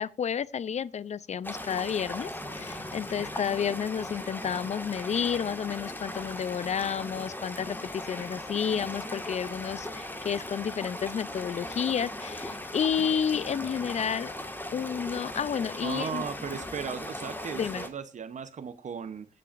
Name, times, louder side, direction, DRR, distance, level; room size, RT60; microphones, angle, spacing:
voice 1, 0.0-14.3 14.7-16.3 17.5-17.8, left 7 dB, 60° left, 0.4 m, -31 dB
sound 1, 1.4-17.9, left 1 dB, 15° left, 1.7 m, -38 dB
voice 2, 15.8-19.3, right 7 dB, 65° right, 0.8 m, -36 dB
21.0 x 7.7 x 2.5 m
cardioid pair, 70°, 13 cm